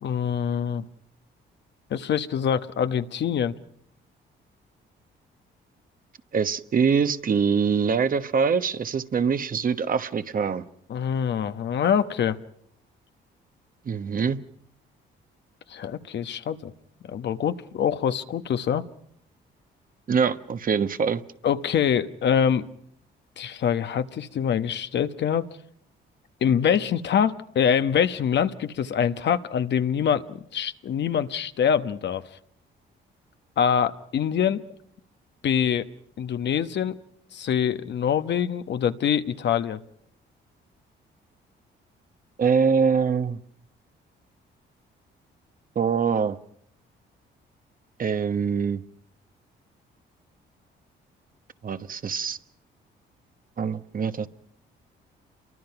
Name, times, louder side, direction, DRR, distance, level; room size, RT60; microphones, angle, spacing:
voice 1, 0.0-0.8 1.9-3.5 10.9-12.4 15.7-16.7 17.0-18.9 21.4-22.7 23.4-25.5 26.4-32.2 33.6-34.6 35.4-35.9 36.2-37.0 37.3-39.8, left 8 dB, 60° left, 10 dB, 1.2 m, -24 dB
voice 2, 6.3-10.6 13.8-14.4 20.1-21.2 42.4-43.4 45.7-46.4 48.0-48.8 51.6-52.4 53.6-54.3, right 6 dB, 45° right, 11 dB, 1.1 m, -24 dB
28.5 x 23.5 x 5.9 m, 0.69 s
cardioid pair, 90°, 20 cm